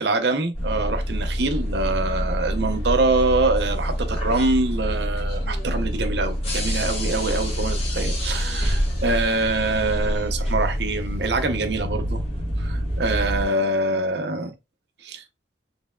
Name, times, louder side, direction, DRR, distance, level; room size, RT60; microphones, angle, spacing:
voice 1, 0.0-12.2 12.6-14.5 15.0-15.2, right 2 dB, 65° right, 0.6 m, -24 dB
sound 1, 0.5-13.5, equal, 35° left, 1.4 m, -26 dB
sound 2, 0.7-10.3, left 1 dB, 55° left, 1.3 m, -46 dB
sound 3, 5.7-11.3, right 1 dB, 25° right, 1.1 m, -44 dB
4.2 x 3.4 x 2.2 m
head